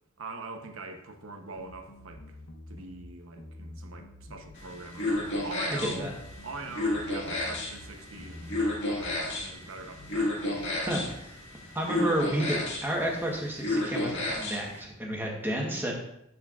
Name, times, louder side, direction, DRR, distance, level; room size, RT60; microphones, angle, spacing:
voice 1, 0.2-2.4 2.7-6.1 6.4-10.4, right 3 dB, 90° right, 5 dB, 0.9 m, -43 dB
sound 1, 1.6-3.1 3.4-4.6 5.2-5.5 5.8-7.9 8.2-9.4 10.0-10.3 10.6-11.2, left 1 dB, 85° left, 0.7 m, -48 dB
sound 2, 4.5-14.8, left 2 dB, 60° left, 2.0 m, -32 dB
voice 2, 5.8-6.1 10.7-11.4 11.7-12.6 12.8-15.9, right 1 dB, 10° right, -1 dB, 1.2 m, -31 dB
12.5 x 4.3 x 2.5 m, 0.81 s
head